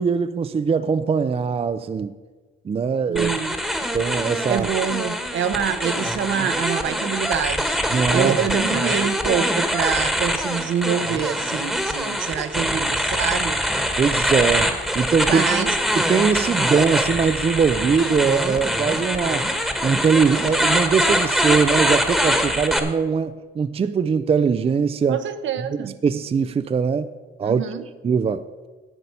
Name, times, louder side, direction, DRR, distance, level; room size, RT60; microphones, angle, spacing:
voice 1, 0.0-2.1 2.6-3.3 3.9-4.7 7.9-8.4 14.0-15.5 16.0-19.5 19.8-25.2 25.8-27.1 27.4-27.6 28.0-28.5, right 6 dB, 30° right, 12 dB, 0.4 m, -21 dB
voice 2, 3.1-3.6 4.5-7.8 8.1-13.6 15.3-15.8 25.1-25.9 27.4-27.8, right 8 dB, 70° right, 10 dB, 0.9 m, -26 dB
sound 1, 3.2-22.8, equal, ahead, 1.3 m, -23 dB
sound 2, 13.6-22.4, left 3 dB, 65° left, 2.5 m, -40 dB
11.0 x 8.0 x 5.5 m, 1.4 s
cardioid pair, 90°, 20 cm